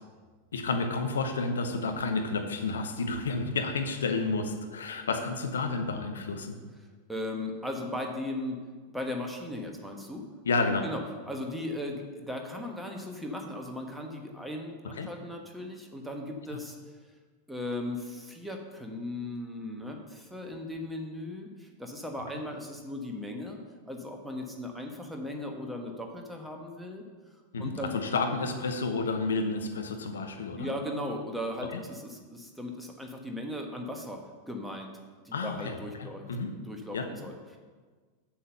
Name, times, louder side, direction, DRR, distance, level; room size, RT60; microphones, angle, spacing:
voice 1, 0.5-6.6 10.5-10.9 14.8-15.1 27.5-30.7 31.7-31.8 35.3-35.7 36.0-36.5 36.9-37.1, left 3 dB, 65° left, 6 dB, 0.9 m, -30 dB
voice 2, 7.1-8.6 8.9-10.2 10.8-11.0 11.3-16.8 17.5-27.0 27.6-27.9 30.6-34.9 35.2-36.2 36.5-37.6, left 1 dB, 5° right, 1 dB, 1.4 m, -37 dB
7.2 x 7.0 x 6.8 m, 1.4 s
figure-of-eight pair, 90°, 0 cm